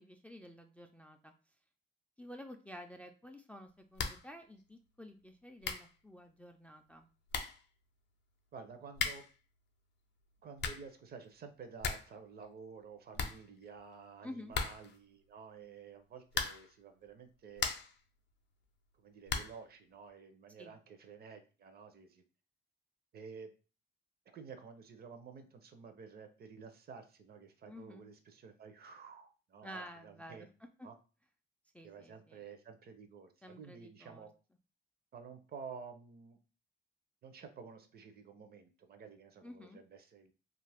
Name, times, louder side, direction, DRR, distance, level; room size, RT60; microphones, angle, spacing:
voice 1, 0.0-1.3 2.2-7.1 14.2-14.5 20.6-20.7 27.6-28.1 29.6-30.5 30.8-30.9 31.7-32.4 33.4-34.3 39.4-39.8, left 1 dB, 5° left, 5 dB, 0.3 m, -51 dB
sound 1, 3.9-4.3 4.6-4.7 5.3-5.4 5.6-6.0 6.9-7.0 7.3-7.7 8.9-9.4 10.3-10.9 11.3-11.4 11.6-12.2 12.4-12.5 12.8-12.9 13.1-13.9 14.5-15.0 16.3-16.8 17.3-18.0 19.3-19.7, left 6 dB, 60° left, 0.5 m, -38 dB
voice 2, 8.5-9.2 10.4-17.7 19.0-22.2 23.1-23.5 24.3-30.5 30.8-31.0 31.8-34.3 35.1-36.4 37.2-40.3, right 5 dB, 50° right, 7 dB, 0.6 m, -51 dB
2.4 x 2.4 x 3.3 m, 0.35 s
cardioid pair, 90°, 20 cm